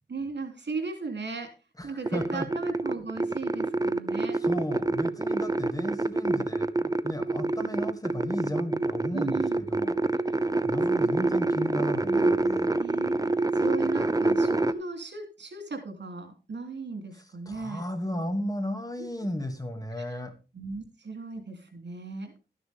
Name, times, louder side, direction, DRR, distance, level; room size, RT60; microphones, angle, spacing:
voice 1, 0.1-1.5 1.8-4.4 9.1-9.6 10.2-10.4 10.9-11.7 12.1-12.3 12.8-17.8 19.0-19.1 20.0-20.2 20.5-22.3, right 4 dB, 75° right, 6 dB, 3.1 m, -37 dB
voice 2, 1.8-2.5 4.4-10.0 10.6-12.7 17.1-20.3, equal, 20° left, 6 dB, 2.3 m, -34 dB
sound 1, 2.1-14.7, right 2 dB, 20° right, 0.8 m, -26 dB
13.0 x 10.0 x 3.6 m, 0.30 s
wide cardioid pair, 95°, 18 cm